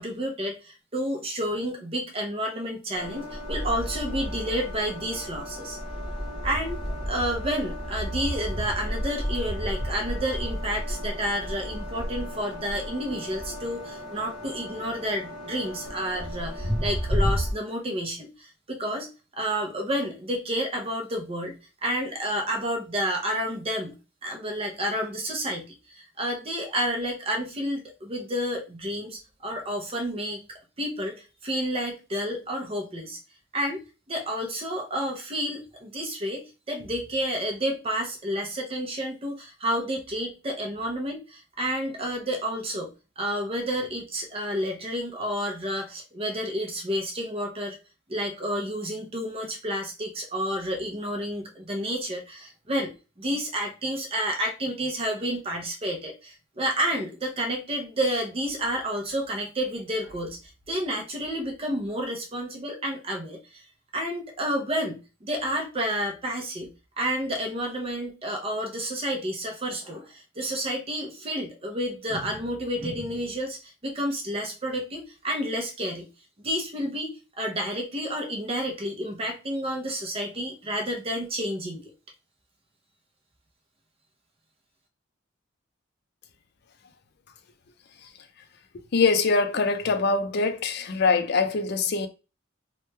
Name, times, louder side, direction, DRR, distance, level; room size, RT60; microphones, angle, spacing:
voice 1, 0.0-5.8 6.4-19.1 19.3-21.6 21.8-24.0 24.2-30.4 30.8-33.2 33.5-33.8 34.1-42.9 43.2-47.8 48.1-60.4 60.7-63.6 63.9-66.7 67.0-76.1 76.4-81.9, equal, 30° right, 0.6 m, -30 dB
sound 1, 2.9-17.5, equal, 20° left, 0.9 m, -32 dB
voice 2, 88.9-92.1, left 4 dB, 55° left, 0.4 m, -23 dB
3.0 x 2.2 x 3.2 m
head